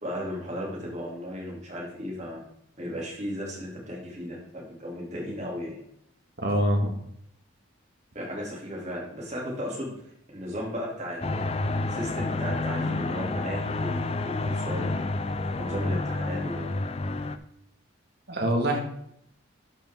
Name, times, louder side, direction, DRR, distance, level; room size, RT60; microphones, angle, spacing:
voice 1, 0.0-2.4 2.8-5.8 8.1-9.9 10.3-15.1 15.5-16.7, equal, 35° right, -3 dB, 3.0 m, -35 dB
voice 2, 6.4-6.9 18.3-18.8, equal, 50° right, 2 dB, 1.8 m, -24 dB
sound 1, 11.2-17.4, left 2 dB, 30° left, 0.4 m, -29 dB
11.5 x 5.6 x 3.7 m, 0.72 s
head